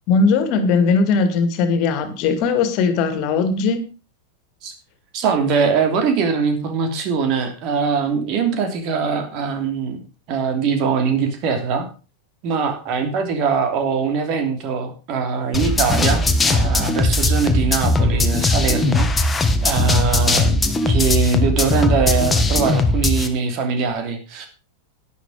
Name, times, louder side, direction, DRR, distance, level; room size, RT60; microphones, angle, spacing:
voice 1, 0.1-3.8, left 4 dB, 40° left, 10 dB, 2.4 m, -19 dB
voice 2, 5.1-11.9 12.4-19.3 19.6-24.5, right 5 dB, 40° right, 6 dB, 3.0 m, -22 dB
sound 1, 15.5-23.3, left 2 dB, 10° left, 1.4 m, -19 dB
11.5 x 10.0 x 5.0 m, 0.34 s
figure-of-eight pair, 90°, 0 cm